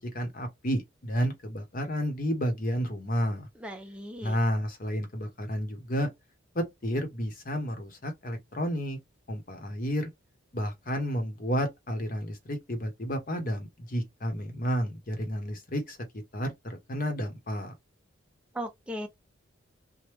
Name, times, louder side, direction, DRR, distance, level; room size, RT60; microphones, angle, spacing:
voice 1, 0.1-3.5 4.2-6.1 6.5-9.0 9.3-10.1 10.5-16.0 16.3-17.7, equal, 45° left, 0.9 m, -31 dB
voice 2, 3.6-4.4 18.5-19.1, equal, 5° right, 0.5 m, -37 dB
3.1 x 2.1 x 3.3 m
head